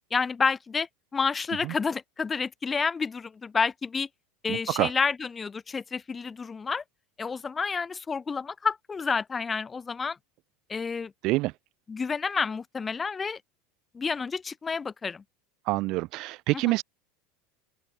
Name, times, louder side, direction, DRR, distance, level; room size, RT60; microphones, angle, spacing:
voice 1, 0.1-4.1 4.4-6.8 7.2-10.2 10.7-11.1 11.9-13.4 13.9-15.2 16.6-16.7, left 5 dB, 20° left, 4.9 m, -29 dB
voice 2, 4.5-4.9 11.2-11.5 15.7-16.8, right 21 dB, 55° right, 1.2 m, -26 dB
open air
supercardioid pair, 120°, 0 cm